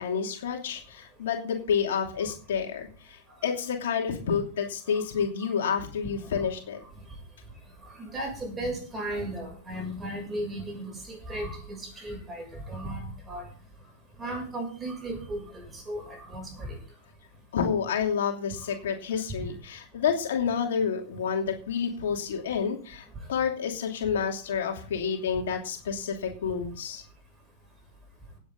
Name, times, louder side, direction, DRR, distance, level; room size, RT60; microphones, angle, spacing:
voice 1, 0.0-6.8 17.5-27.0, left 7 dB, 65° left, 2 dB, 2.8 m, -29 dB
voice 2, 8.0-13.5 14.2-15.5 15.7-16.8, right 1 dB, 15° right, 3 dB, 7.0 m, -35 dB
18.0 x 8.2 x 3.9 m, 0.41 s
figure-of-eight pair, 100°, 0 cm